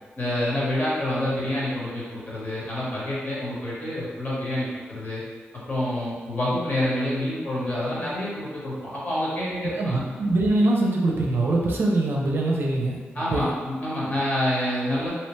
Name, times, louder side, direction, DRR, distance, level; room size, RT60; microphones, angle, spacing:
voice 1, 0.2-5.2 5.5-9.9 13.1-15.1, left 1 dB, 40° left, -8 dB, 1.2 m, -27 dB
voice 2, 9.6-13.0 13.3-13.5, right 2 dB, 60° right, -2 dB, 0.5 m, -23 dB
2.9 x 2.1 x 3.1 m, 1.5 s
cardioid pair, 80°, 4 cm